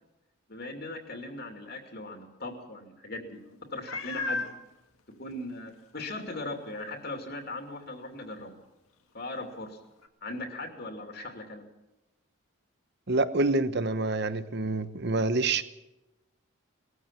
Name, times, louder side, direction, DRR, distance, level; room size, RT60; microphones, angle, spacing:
voice 1, 0.5-3.4 3.7-4.5 5.2-8.5 9.1-9.8 10.2-11.6, left 2 dB, 50° left, 3 dB, 2.8 m, -39 dB
Meow, 3.9-4.6 5.3-5.4 5.9-6.0 10.0-10.1, left 3 dB, 85° left, 2.0 m, -33 dB
voice 2, 13.1-15.6, right 2 dB, 50° right, 13 dB, 1.0 m, -27 dB
20.5 x 14.5 x 8.9 m, 0.97 s
head